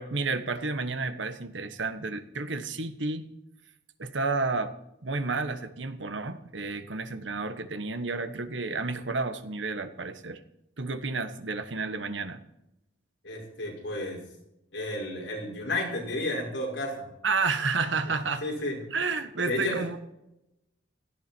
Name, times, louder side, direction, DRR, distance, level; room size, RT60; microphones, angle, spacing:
voice 1, 0.0-3.3 4.0-4.7 5.0-10.4 10.8-12.4 17.2-18.4 18.9-20.0, right 3 dB, 85° right, 10 dB, 1.4 m, -31 dB
voice 2, 13.2-14.2 14.7-17.1 18.4-18.8 19.5-19.8, left 1 dB, 75° left, 0 dB, 5.9 m, -32 dB
17.0 x 14.5 x 4.6 m, 0.86 s
head